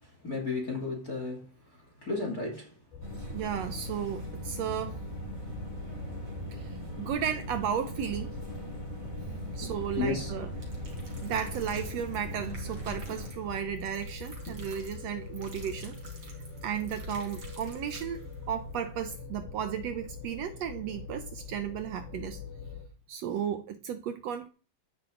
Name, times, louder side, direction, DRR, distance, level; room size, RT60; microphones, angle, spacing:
voice 1, 0.0-2.8 9.6-10.3 14.5-14.6, left 3 dB, 25° left, 2.7 m, -34 dB
sound 1, 2.9-22.8, left 3 dB, 90° left, 3.9 m, -43 dB
sound 2, 3.0-13.3, right 1 dB, 20° right, 4.4 m, -40 dB
voice 2, 3.3-4.9 6.5-8.3 9.5-10.5 11.2-15.9 16.6-18.2 18.5-22.4 23.1-24.5, right 9 dB, 85° right, 1.4 m, -34 dB
sound 3, 10.6-18.4 18.7-18.8 19.1-19.2, right 1 dB, 35° right, 4.9 m, -49 dB
14.0 x 10.0 x 3.9 m
omnidirectional pair, 4.1 m